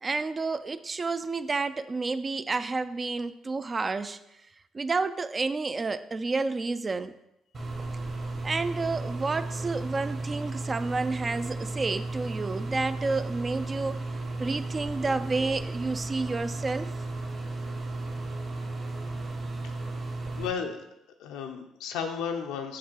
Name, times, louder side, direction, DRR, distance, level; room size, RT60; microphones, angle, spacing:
voice 1, 0.0-4.2 4.7-7.1 8.4-14.0 14.4-16.9, right 3 dB, 30° right, 12 dB, 0.3 m, -30 dB
sound 1, 7.5-20.5, right 2 dB, 50° right, 1.6 m, -34 dB
voice 2, 20.4-20.8 21.2-22.8, left 6 dB, 85° left, 5 dB, 0.6 m, -33 dB
6.6 x 2.9 x 5.6 m, 0.85 s
supercardioid pair, 75°, 0 cm